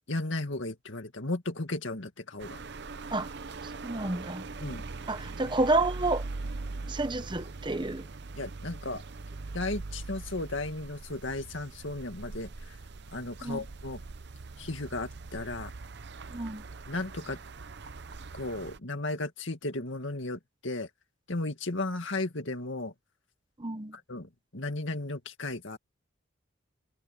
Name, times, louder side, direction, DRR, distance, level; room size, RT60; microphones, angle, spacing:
voice 1, 0.1-2.6 4.6-4.9 8.3-9.0 9.5-12.8 13.1-14.0 14.6-15.7 16.9-17.4 18.3-20.9 21.3-22.9 23.9-25.8, left 2 dB, 60° left, 2.2 m, -35 dB
sound 1, 2.4-18.8, right 3 dB, 50° right, 0.7 m, -41 dB
voice 2, 3.8-4.4 5.1-6.2 6.9-8.0 13.4-13.6 16.3-16.6 23.6-24.0, right 2 dB, 20° right, 0.9 m, -29 dB
head